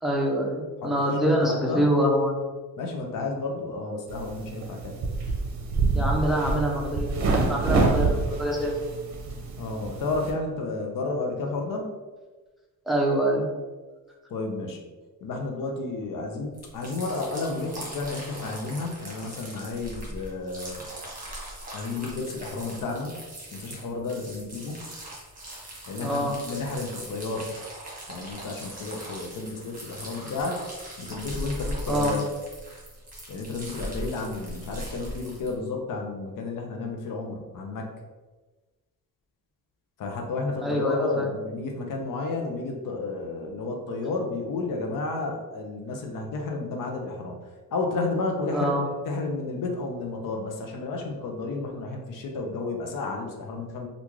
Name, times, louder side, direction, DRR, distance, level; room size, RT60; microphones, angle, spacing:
voice 1, 0.0-2.4 5.9-8.7 12.9-13.5 26.0-26.3 31.9-32.1 40.6-41.3 48.5-48.9, equal, ahead, -2 dB, 0.6 m, -25 dB
voice 2, 1.2-1.8 2.8-4.9 9.6-11.9 14.3-14.9 15.2-20.8 21.7-23.1 23.5-24.8 25.9-27.5 28.1-30.7 31.0-32.2 33.3-37.9 40.0-47.4 47.7-53.9, left 3 dB, 60° left, 2 dB, 0.6 m, -32 dB
sound 1, 4.1-10.3, right 3 dB, 50° right, 0.7 m, -27 dB
sound 2, 16.5-35.5, right 1 dB, 20° right, 1.3 m, -40 dB
3.5 x 2.5 x 3.1 m, 1.3 s
cardioid pair, 120°, 36 cm